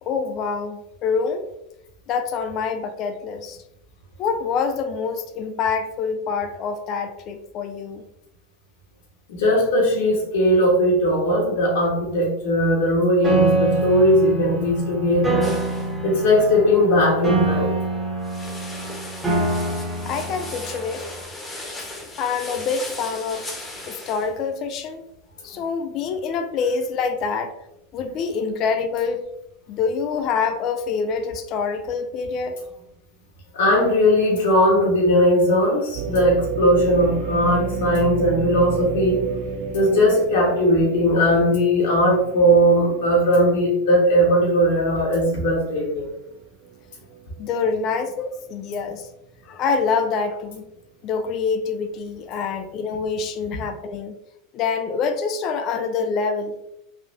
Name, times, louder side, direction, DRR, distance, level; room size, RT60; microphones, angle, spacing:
voice 1, 0.0-1.5 2.1-3.6 4.2-8.0 20.1-21.1 22.2-23.5 23.9-25.0 25.4-27.5 27.9-29.3 29.7-32.6 47.4-49.1 49.5-50.7 51.0-54.1 54.5-56.5, left 5 dB, 45° left, 7 dB, 0.4 m, -26 dB
voice 2, 9.3-15.5 16.0-17.7 25.5-25.6 33.5-39.4 39.7-46.1, equal, 80° left, -2 dB, 1.4 m, -19 dB
Piano, 13.2-21.2, right 2 dB, 10° right, 1.3 m, -25 dB
sound 1, 15.4-15.9 18.2-24.3, left 2 dB, 15° left, 1.1 m, -37 dB
sound 2, 35.9-45.9 46.4-46.5 47.1-47.5, right 6 dB, 55° right, 0.3 m, -31 dB
3.9 x 2.6 x 2.6 m, 0.83 s
supercardioid pair, 115°, 0 cm